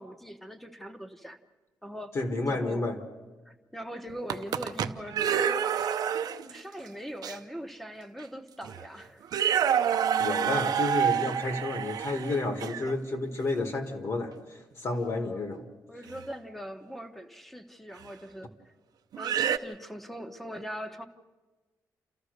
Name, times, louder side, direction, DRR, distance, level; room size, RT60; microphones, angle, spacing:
voice 1, 0.0-1.4 1.8-2.2 2.5-2.9 3.4-5.7 6.5-9.2 14.9-15.5 15.9-18.5 19.2-21.1, equal, ahead, 8 dB, 1.0 m, -41 dB
voice 2, 2.1-3.0 10.2-14.3 14.8-15.7, left 2 dB, 45° left, 6 dB, 1.7 m, -30 dB
sound 1, 4.1-6.6 7.2-7.3 8.2-8.3 8.6-8.9 9.2-12.9 16.1-16.3 18.0-18.1 19.1-19.6, right 9 dB, 75° right, 0.7 m, -28 dB
29.5 x 14.5 x 6.5 m, 1.2 s
wide cardioid pair, 175°, 7 cm